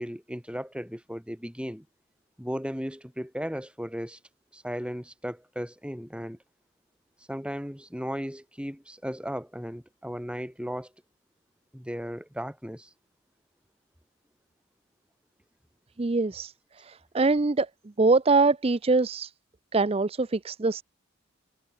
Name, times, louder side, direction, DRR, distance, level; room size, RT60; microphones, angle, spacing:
voice 1, 0.0-1.8 2.4-4.2 4.5-6.4 7.3-10.9 11.7-12.9, equal, 5° right, 5.1 m, -36 dB
voice 2, 16.0-16.5 16.8-17.7 18.0-19.3 19.7-20.8, right 3 dB, 25° right, 0.5 m, -23 dB
head